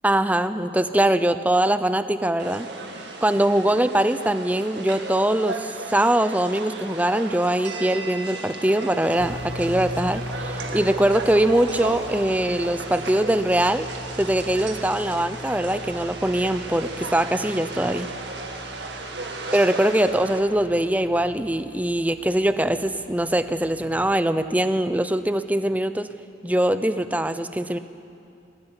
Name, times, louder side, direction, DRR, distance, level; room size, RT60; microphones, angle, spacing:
voice 1, 0.0-2.7 3.2-13.9 14.2-18.1 19.5-26.1 26.4-27.8, right 1 dB, 10° right, 11 dB, 0.7 m, -22 dB
sound 1, 2.4-20.4, right 3 dB, 60° right, 2.4 m, -35 dB
sound 2, 9.2-23.9, left 1 dB, 70° left, 4.1 m, -40 dB
19.5 x 19.0 x 10.0 m, 2.5 s
head